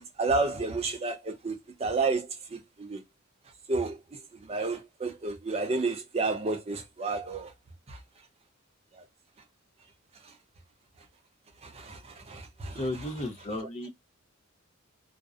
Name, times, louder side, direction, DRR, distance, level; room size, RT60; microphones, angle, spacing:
voice 1, 0.0-3.0 3.7-7.5 7.9-8.0 8.9-9.0 11.6-12.8 13.6-13.7, right 3 dB, 30° right, 0.5 m, -31 dB
voice 2, 12.7-13.9, left 1 dB, 30° left, 0.5 m, -34 dB
2.5 x 2.1 x 2.4 m
head